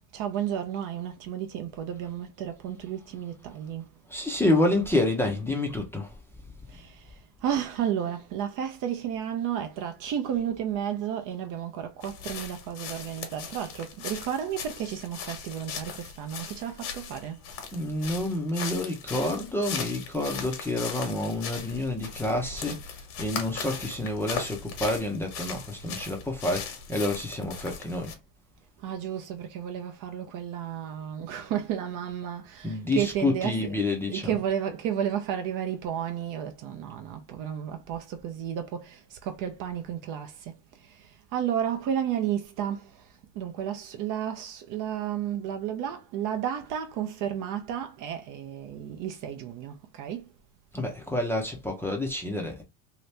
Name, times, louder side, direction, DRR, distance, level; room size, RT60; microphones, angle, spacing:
voice 1, 0.1-3.8 6.7-6.9 7.4-17.4 28.8-33.7 34.1-40.3 41.3-42.8 43.4-50.2, right 9 dB, 45° right, 0.5 m, -32 dB
voice 2, 4.1-6.1 17.7-22.9 23.2-28.1 32.6-34.4 50.7-52.6, left 1 dB, 5° left, 0.5 m, -28 dB
sound 1, 12.0-28.1, left 6 dB, 75° left, 1.3 m, -38 dB
2.9 x 2.6 x 3.2 m
supercardioid pair, 125°, 48 cm